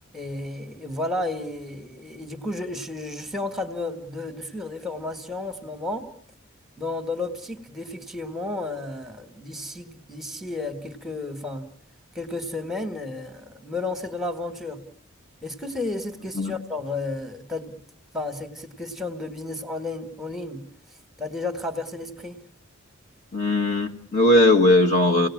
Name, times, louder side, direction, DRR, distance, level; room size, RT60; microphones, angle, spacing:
voice 1, 0.1-6.1 6.8-11.7 12.1-14.8 15.4-17.8 18.1-20.6 21.2-22.4, left 2 dB, ahead, 6 dB, 1.7 m, -32 dB
voice 2, 23.3-25.3, left 1 dB, 35° left, 1 dB, 1.5 m, -19 dB
30.0 x 18.5 x 7.3 m, 0.65 s
head